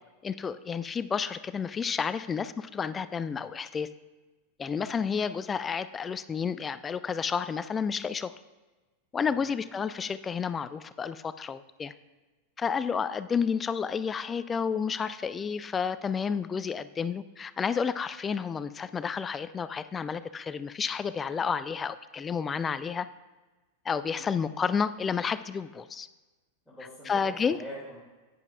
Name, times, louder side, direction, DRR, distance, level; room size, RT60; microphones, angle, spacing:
voice 1, 0.2-3.9 4.6-8.3 9.1-11.9 12.6-23.1 23.9-26.1 27.1-27.6, left 6 dB, 20° left, 14 dB, 0.3 m, -31 dB
voice 2, 4.7-5.1 9.2-9.4 24.0-24.3 26.7-28.0, equal, ahead, -10 dB, 2.5 m, -45 dB
10.5 x 9.3 x 2.4 m, 1.2 s
figure-of-eight pair, 90°, 0 cm